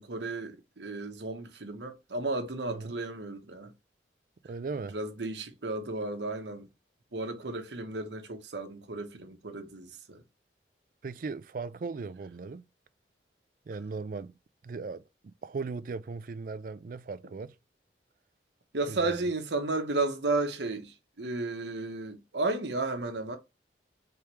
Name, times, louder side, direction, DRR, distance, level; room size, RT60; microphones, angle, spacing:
voice 1, 0.0-3.7 4.9-6.7 7.1-10.2 18.7-23.4, right 2 dB, 85° right, 1.0 m, -33 dB
voice 2, 4.4-5.0 11.0-12.6 13.7-14.3 14.6-17.5 18.9-19.2, right 4 dB, 50° right, 0.4 m, -38 dB
4.8 x 3.5 x 2.9 m
head